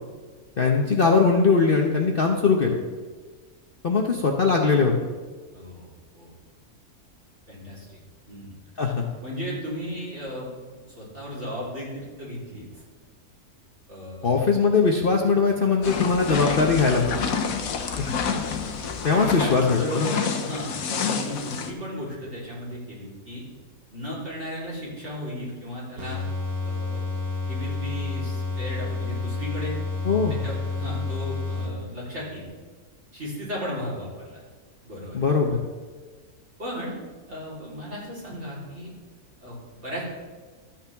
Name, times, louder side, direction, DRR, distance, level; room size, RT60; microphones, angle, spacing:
voice 1, 0.6-2.8 3.8-4.9 8.8-9.0 14.2-17.3 18.0-18.1 19.0-20.1 30.0-30.4 35.1-35.6, left 4 dB, 45° left, 1 dB, 0.9 m, -21 dB
voice 2, 5.5-5.9 6.1-6.3 7.5-7.9 8.3-8.5 9.2-12.8 13.9-14.4 19.1-23.4 23.9-26.2 26.6-27.1 27.5-29.8 30.4-32.5 33.1-34.4 34.8-35.2 35.5-35.6 36.6-36.9 37.3-38.9 39.4-40.0, equal, 50° right, -7 dB, 4.1 m, -35 dB
sound 1, 15.8-21.7, left 6 dB, 70° left, 1.3 m, -28 dB
sound 2, 26.0-32.1, left 3 dB, 70° right, 2.0 m, -30 dB
13.0 x 8.7 x 3.5 m, 1.4 s
omnidirectional pair, 1.6 m